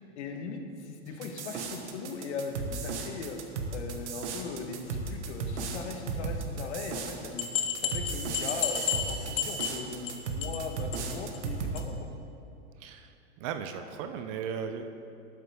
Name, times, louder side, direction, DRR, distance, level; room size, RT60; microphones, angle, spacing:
voice 1, 0.1-3.4 3.7-7.5 7.8-12.1, left 4 dB, 75° left, 5 dB, 1.3 m, -39 dB
sound 1, 1.2-11.8, right 4 dB, 75° right, 1.3 m, -36 dB
sound 2, 7.4-10.1 10.4-10.7 10.9-11.0 11.3-11.4 11.8-11.9, left 9 dB, 55° left, 1.0 m, -31 dB
voice 2, 12.8-13.1 13.4-14.9, right 7 dB, 30° right, 8 dB, 0.4 m, -36 dB
12.0 x 8.1 x 3.5 m, 2.6 s
supercardioid pair, 145°, 35 cm